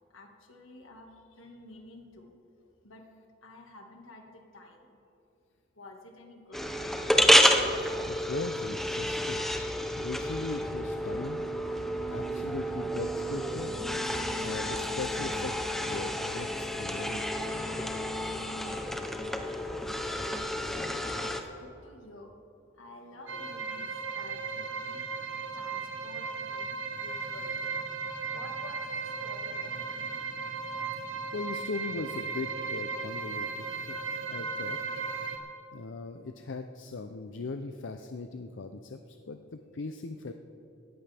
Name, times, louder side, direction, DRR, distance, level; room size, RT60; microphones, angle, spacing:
voice 1, 0.1-2.3 2.8-3.0 3.4-4.9 5.8-7.2 21.1-22.4 22.8-25.1 25.5-27.7 28.3-30.0, left 2 dB, 85° left, 2 dB, 1.8 m, -51 dB
sound 1, 6.5-21.4, equal, ahead, 0.7 m, -29 dB
voice 2, 7.7-9.4 10.0-11.5 11.7-13.8 14.4-17.3 31.3-34.0 34.3-35.0 35.7-40.3, left 3 dB, 70° left, 7 dB, 0.5 m, -39 dB
sound 2, 23.3-35.4, right 5 dB, 70° right, 1.4 m, -36 dB
18.5 x 14.5 x 3.4 m, 2.8 s
head